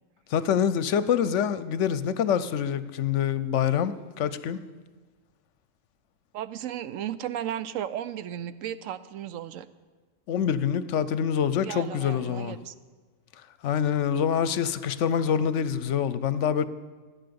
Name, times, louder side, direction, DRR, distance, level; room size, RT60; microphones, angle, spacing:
voice 1, 0.3-4.6 10.3-12.6 13.6-16.7, left 8 dB, 70° left, 0.9 m, -26 dB
voice 2, 6.3-9.7 11.6-12.7, right 10 dB, 80° right, 1.0 m, -35 dB
14.0 x 9.6 x 6.9 m
omnidirectional pair, 1.4 m